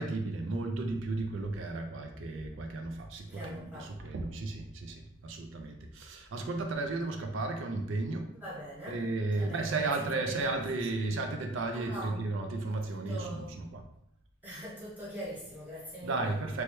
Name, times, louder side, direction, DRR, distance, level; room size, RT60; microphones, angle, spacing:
voice 1, 0.0-8.3 8.9-13.8 16.0-16.6, right 3 dB, 75° right, 4 dB, 0.4 m, -34 dB
voice 2, 3.2-3.9 8.3-9.0 9.4-10.4 10.9-11.2 11.7-12.2 12.9-13.5 14.4-16.3, right 1 dB, 10° right, -8 dB, 1.2 m, -42 dB
3.0 x 2.2 x 3.0 m, 0.79 s
head